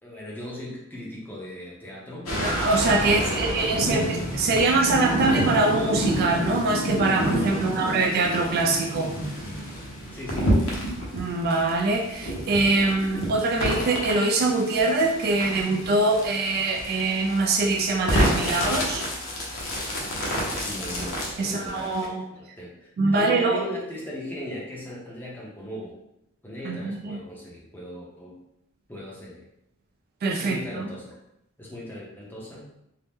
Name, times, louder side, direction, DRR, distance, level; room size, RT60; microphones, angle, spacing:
voice 1, 0.0-2.3 3.0-4.1 7.5-7.8 10.1-10.5 20.3-25.9 26.4-28.3 28.9-29.4 30.4-31.2 31.6-32.7, left 1 dB, 10° left, -5 dB, 0.7 m, -38 dB
sound 1, 2.3-22.1, equal, 80° left, 0.8 m, -29 dB
voice 2, 2.4-9.2 11.1-19.0 21.4-22.2 23.0-23.6 26.6-27.2 30.2-30.9, right 2 dB, 45° right, 2 dB, 0.3 m, -23 dB
2.8 x 2.1 x 3.4 m, 0.81 s
head